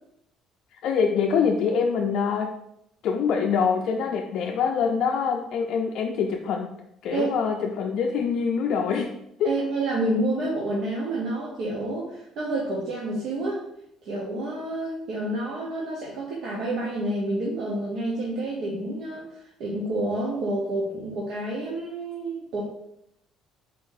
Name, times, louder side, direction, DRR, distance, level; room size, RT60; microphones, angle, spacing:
voice 1, 0.7-2.5 3.0-6.7 7.0-9.1 9.4-9.5, left 6 dB, 65° left, 1 dB, 0.4 m, -24 dB
voice 2, 9.4-13.6 14.0-22.6, right 2 dB, 65° right, -4 dB, 0.8 m, -29 dB
4.2 x 2.6 x 3.8 m, 0.79 s
cardioid pair, 130°, 0 cm